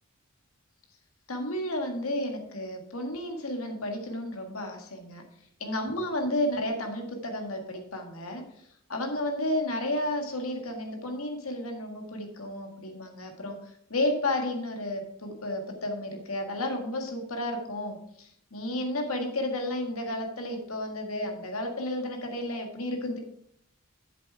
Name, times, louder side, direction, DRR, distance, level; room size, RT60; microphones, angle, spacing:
voice 1, 1.3-5.2 5.6-8.4 8.9-13.6 13.9-23.2, left 1 dB, 85° left, 3 dB, 1.7 m, -32 dB
8.3 x 7.4 x 4.7 m, 0.70 s
head